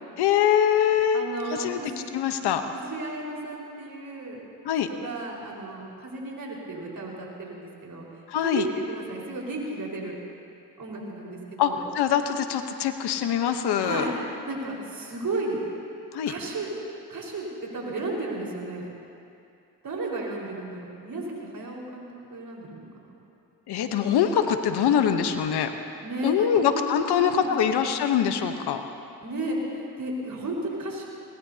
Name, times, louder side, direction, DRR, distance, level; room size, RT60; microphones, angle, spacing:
voice 1, 0.2-1.3 1.6-1.8 2.1-2.6 4.6-4.9 8.3-8.7 11.6-14.1 16.1-16.3 23.7-25.7 26.2-28.8, left 8 dB, 80° left, 7 dB, 1.1 m, -23 dB
voice 2, 1.1-2.0 2.7-4.4 4.9-8.0 8.4-10.2 10.8-11.8 13.8-14.1 14.5-15.6 16.3-16.7 17.1-18.9 19.8-23.0 26.0-26.8 27.1-27.7 29.2-31.0, right 2 dB, 55° right, -3 dB, 5.0 m, -34 dB
24.5 x 19.5 x 2.9 m, 2.6 s
supercardioid pair, 50°, 39 cm